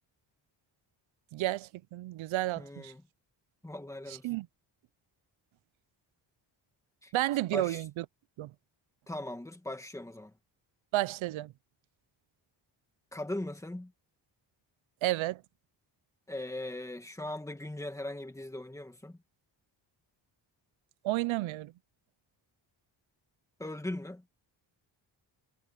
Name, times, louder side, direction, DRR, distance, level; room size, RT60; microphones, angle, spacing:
voice 1, 1.3-2.9 4.2-4.5 7.1-8.0 8.4-8.5 10.9-11.5 15.0-15.4 21.0-21.7, right 17 dB, 90° right, 0.6 m, -31 dB
voice 2, 2.6-3.0 3.6-4.3 7.0-7.1 7.5-7.8 9.1-10.3 13.1-13.9 16.3-19.2 23.6-24.2, left 1 dB, 5° left, 2.1 m, -39 dB
wide cardioid pair, 175°, 46 cm